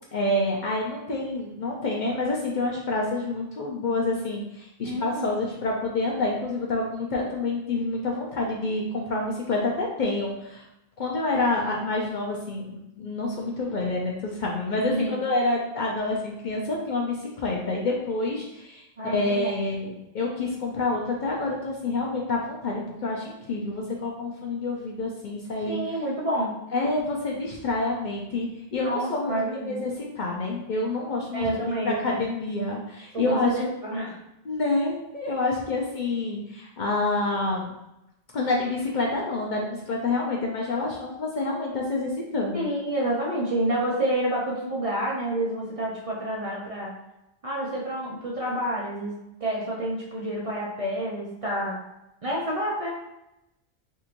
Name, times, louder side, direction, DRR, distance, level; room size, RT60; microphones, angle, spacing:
voice 1, 0.1-10.6 11.0-25.8 26.7-31.5 31.8-33.5 34.5-37.7 38.3-42.6, left 2 dB, 55° left, -2 dB, 0.6 m, -28 dB
voice 2, 4.8-5.3 14.9-15.2 19.0-19.6 25.7-26.6 28.8-29.8 31.3-32.2 33.1-34.2 42.5-46.9 47.4-51.8 52.2-52.9, right 1 dB, 40° right, -4 dB, 0.6 m, -29 dB
3.6 x 2.9 x 2.5 m, 0.88 s
omnidirectional pair, 1.1 m